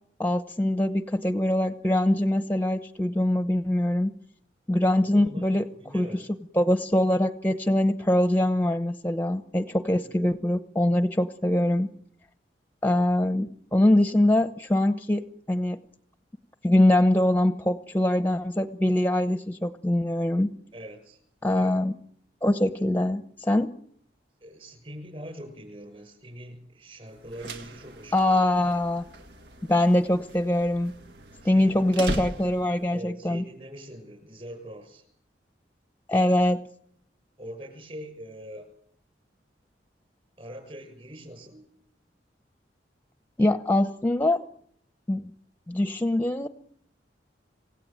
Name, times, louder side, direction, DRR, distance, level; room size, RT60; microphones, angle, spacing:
voice 1, 0.2-4.1 4.7-5.6 5.9-6.2 6.6-11.9 12.8-15.8 16.6-20.5 21.4-21.9 22.4-23.7 28.1-29.0 29.7-30.9 31.4-33.4 36.1-36.7 43.4-44.5 45.1-45.2 45.7-46.5, left 1 dB, 10° left, 10 dB, 0.9 m, -23 dB
voice 2, 5.0-5.5 5.8-6.3 9.9-10.0 20.7-21.2 21.5-21.8 24.4-28.4 31.4-32.0 32.9-35.0 37.4-38.7 40.4-41.7, equal, 35° right, 9 dB, 6.5 m, -43 dB
sound 1, 27.2-32.9, right 1 dB, 75° right, 1.8 m, -39 dB
27.5 x 17.0 x 8.9 m, 0.68 s
head